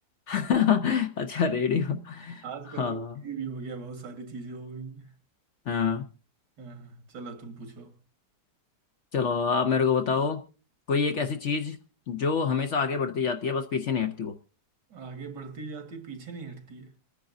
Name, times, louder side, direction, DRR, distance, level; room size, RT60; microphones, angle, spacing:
voice 1, 0.3-3.1 5.7-6.1 9.1-10.4 10.9-11.8 12.1-14.3, left 6 dB, 55° left, 0.9 m, -26 dB
voice 2, 2.4-3.0 3.2-5.1 6.6-8.0 14.9-16.9, right 5 dB, 85° right, 2.2 m, -40 dB
27.5 x 9.8 x 2.6 m
omnidirectional pair, 1.8 m